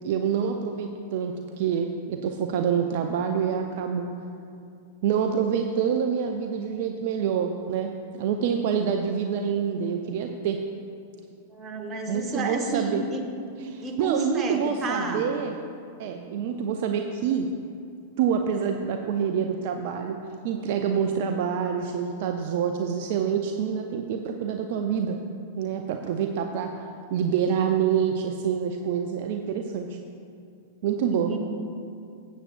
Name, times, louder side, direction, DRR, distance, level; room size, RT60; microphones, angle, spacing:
voice 1, 0.0-4.1 5.0-7.9 8.2-10.6 12.1-13.0 13.6-15.6 16.0-17.5 18.2-20.2 20.4-25.2 25.6-26.7 27.1-30.0 30.8-31.3, right 7 dB, 55° right, 5 dB, 0.5 m, -26 dB
voice 2, 11.5-13.2 13.8-15.3 31.1-31.4, right 2 dB, 25° right, 3 dB, 1.2 m, -31 dB
14.5 x 8.1 x 2.5 m, 2.5 s
figure-of-eight pair, 95°, 0 cm